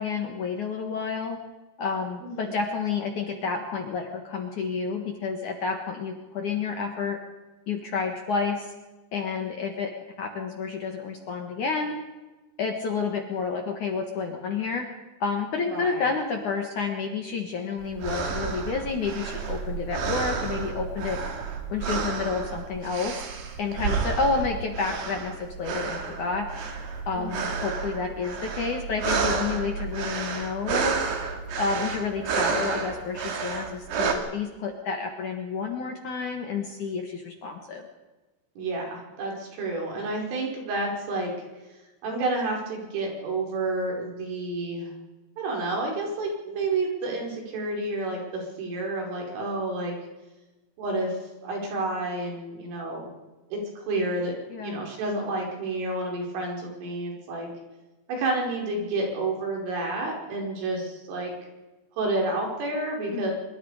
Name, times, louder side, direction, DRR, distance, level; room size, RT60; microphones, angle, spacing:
voice 1, 0.0-1.4 1.8-7.2 7.7-8.7 9.1-9.9 10.2-12.0 12.6-14.9 15.2-21.2 21.7-23.2 23.6-26.5 27.1-31.0 31.6-37.8 54.5-54.8 63.1-63.3, left 5 dB, 60° left, 3 dB, 2.2 m, -30 dB
voice 2, 15.7-16.1 27.1-27.7 38.6-41.3 42.0-44.9 45.4-49.9 50.8-53.1 53.5-57.5 58.1-61.3 61.9-63.3, right 2 dB, 85° right, -1 dB, 7.7 m, -30 dB
sound 1, 17.8-34.1, right 5 dB, 65° right, 4.2 m, -31 dB
25.0 x 23.0 x 5.0 m, 1.1 s
omnidirectional pair, 5.6 m